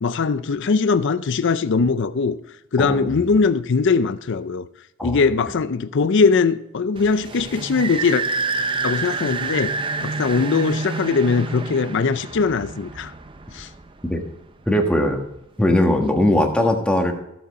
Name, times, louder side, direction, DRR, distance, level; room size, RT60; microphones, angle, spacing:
voice 1, 0.0-2.4 2.7-4.6 5.0-8.2 8.8-9.7 10.0-13.1 13.5-13.7, left 4 dB, 55° left, 0.5 m, -20 dB
voice 2, 2.8-3.3 5.0-5.2 14.1-14.2 14.7-15.2 15.6-17.1, left 1 dB, 5° left, 1.4 m, -19 dB
sound 1, 7.0-14.3, right 3 dB, 25° right, 0.5 m, -28 dB
15.0 x 6.9 x 4.1 m
head